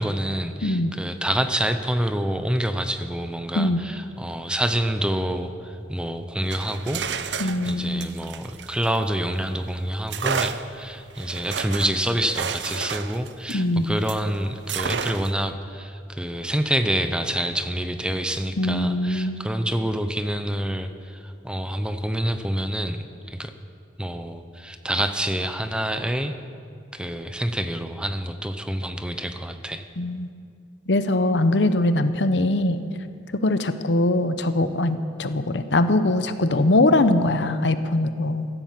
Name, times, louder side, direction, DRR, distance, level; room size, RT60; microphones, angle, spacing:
voice 1, 0.0-7.0 7.3-23.5 24.0-26.3 26.9-29.8, right 1 dB, 5° right, 8 dB, 0.7 m, -27 dB
voice 2, 0.6-0.9 3.5-3.8 7.4-8.1 13.5-14.0 18.6-19.4 30.0-30.3 30.9-32.8 33.4-38.5, left 2 dB, 75° left, 10 dB, 0.9 m, -22 dB
sound 1, 6.4-9.4 10.1-14.3 14.7-15.5, right 6 dB, 75° right, 0.7 m, -31 dB
16.0 x 12.0 x 7.6 m, 2.4 s
head